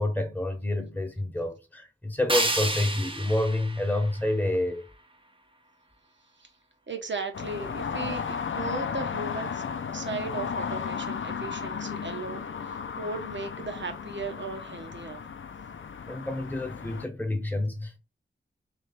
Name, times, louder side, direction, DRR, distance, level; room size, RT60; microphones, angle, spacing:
voice 1, 0.0-4.8 16.1-18.0, left 1 dB, 10° left, 1.1 m, -28 dB
sound 1, 2.3-5.3, right 2 dB, 25° right, 0.8 m, -31 dB
voice 2, 6.9-9.7 9.9-15.2, right 3 dB, 60° right, 1.1 m, -36 dB
sound 2, 7.3-17.1, left 6 dB, 70° left, 0.5 m, -34 dB
3.4 x 3.2 x 4.2 m
wide cardioid pair, 50°, 21 cm